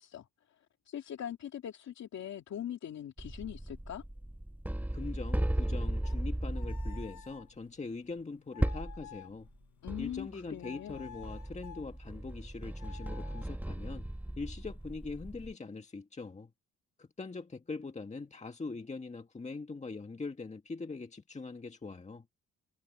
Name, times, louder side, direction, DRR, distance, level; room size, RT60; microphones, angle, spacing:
voice 1, 0.0-4.0 9.8-11.0, left 10 dB, 65° left, 2.5 m, -42 dB
sound 1, 3.2-7.3 8.6-9.1 9.5-9.6 9.9-10.4 10.9-15.5, right 1 dB, 5° right, 2.0 m, -36 dB
voice 2, 4.9-9.5 10.0-14.1 14.4-16.5 17.0-22.3, left 3 dB, 25° left, 1.7 m, -42 dB
sound 2, 5.9-10.3 10.6-11.9 12.7-13.4, left 9 dB, 80° left, 1.6 m, -53 dB
cardioid pair, 90°, 30 cm